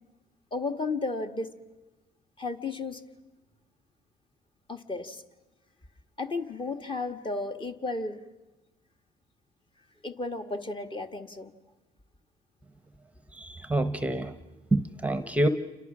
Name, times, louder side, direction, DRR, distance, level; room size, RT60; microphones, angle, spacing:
voice 1, 0.5-1.5 2.4-3.0 4.7-5.2 6.2-8.2 10.0-11.5, left 3 dB, 30° left, 6 dB, 1.6 m, -33 dB
voice 2, 13.3-14.3 14.7-15.5, right 1 dB, 10° right, 11 dB, 0.9 m, -27 dB
29.0 x 25.5 x 6.2 m, 1.1 s
cardioid pair, 110°, 17 cm